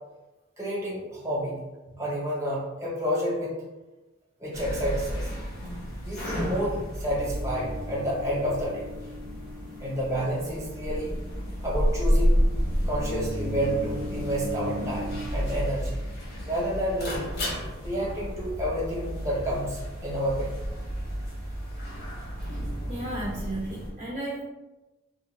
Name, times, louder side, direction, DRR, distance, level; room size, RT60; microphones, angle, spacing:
voice 1, 0.6-1.6 2.0-3.5 4.4-5.3 6.0-8.9 9.8-11.1 11.6-12.4 12.9-15.9 16.5-17.1 17.8-20.5, equal, 15° right, -5 dB, 0.9 m, -30 dB
sound 1, 4.5-23.9, equal, 55° left, 0.9 m, -31 dB
voice 2, 22.9-24.4, right 1 dB, 35° right, -5 dB, 0.5 m, -33 dB
2.5 x 2.3 x 3.2 m, 1.1 s
head